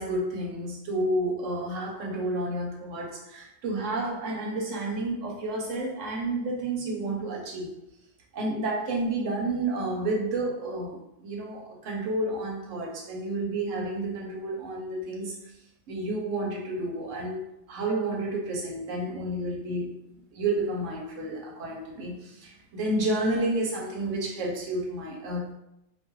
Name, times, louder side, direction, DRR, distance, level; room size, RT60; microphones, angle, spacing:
voice 1, 0.0-7.7 8.3-15.4 15.9-19.9 20.3-25.5, right 2 dB, 70° right, -1 dB, 1.0 m, -30 dB
2.6 x 2.3 x 3.0 m, 0.84 s
omnidirectional pair, 1.3 m